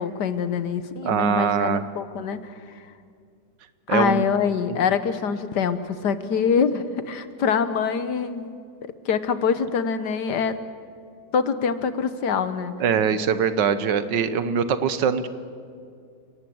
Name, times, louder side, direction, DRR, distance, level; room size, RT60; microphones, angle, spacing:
voice 1, 0.0-2.4 3.9-8.5 8.8-10.6 11.3-12.7, left 6 dB, 70° left, 12 dB, 1.6 m, -24 dB
voice 2, 1.0-1.8 3.9-4.3 4.7-4.8 12.8-15.3, right 7 dB, 80° right, 12 dB, 1.7 m, -22 dB
29.5 x 18.5 x 7.8 m, 2.3 s
omnidirectional pair, 1.9 m